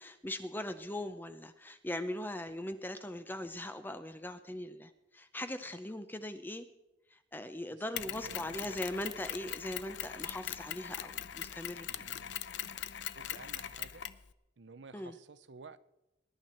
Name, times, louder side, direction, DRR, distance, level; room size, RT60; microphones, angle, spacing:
voice 1, 0.0-6.7 7.1-12.1 14.9-15.2, left 1 dB, 10° left, 10 dB, 0.6 m, -40 dB
voice 2, 7.7-8.9 11.9-12.3 13.2-14.1 14.6-15.8, right 4 dB, 70° right, 16 dB, 0.6 m, -53 dB
Mechanisms, 8.0-14.2, left 10 dB, 65° left, 0.6 m, -41 dB
20.0 x 11.0 x 4.4 m, 0.94 s
head